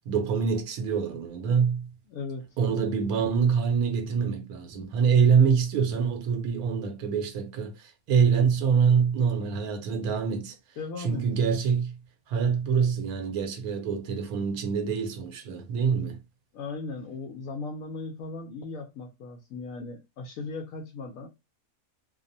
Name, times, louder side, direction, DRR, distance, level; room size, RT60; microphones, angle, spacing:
voice 1, 0.1-1.9 2.6-10.5 11.0-12.0 12.3-16.2, right 6 dB, 85° right, 1.2 m, -25 dB
voice 2, 2.1-2.6 10.8-11.2 16.5-21.3, left 3 dB, 75° left, 1.0 m, -37 dB
2.8 x 2.0 x 2.6 m
omnidirectional pair, 1.5 m